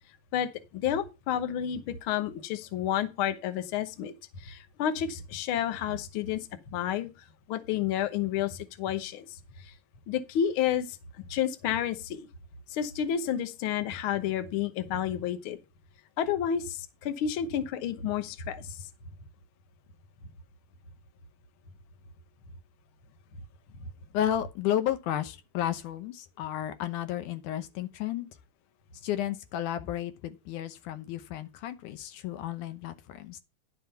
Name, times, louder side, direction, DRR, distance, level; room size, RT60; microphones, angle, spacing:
voice 1, 0.3-6.4 6.7-7.1 7.5-9.3 9.6-9.7 10.1-11.0 11.3-12.3 12.7-15.6 16.2-18.8, left 9 dB, 60° left, 1.4 m, -30 dB
voice 2, 24.1-28.3 29.0-33.4, left 11 dB, 85° left, 2.5 m, -32 dB
10.5 x 5.6 x 5.6 m
omnidirectional pair, 3.5 m